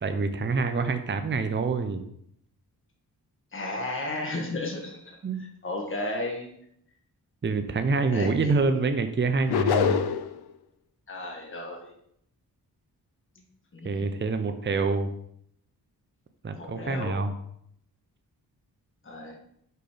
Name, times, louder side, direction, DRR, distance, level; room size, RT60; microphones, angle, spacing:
voice 1, 0.0-2.1 5.2-5.4 7.4-10.0 13.8-15.1 16.4-17.3, right 4 dB, 30° right, 8 dB, 0.7 m, -26 dB
voice 2, 3.5-6.5 8.1-8.7 11.1-11.9 13.7-14.1 16.6-17.2 19.0-19.4, left 2 dB, 30° left, 0 dB, 1.5 m, -34 dB
sound 1, 9.5-10.4, left 8 dB, 75° left, 0.6 m, -24 dB
5.2 x 4.5 x 5.0 m, 0.71 s
cardioid pair, 55°, 39 cm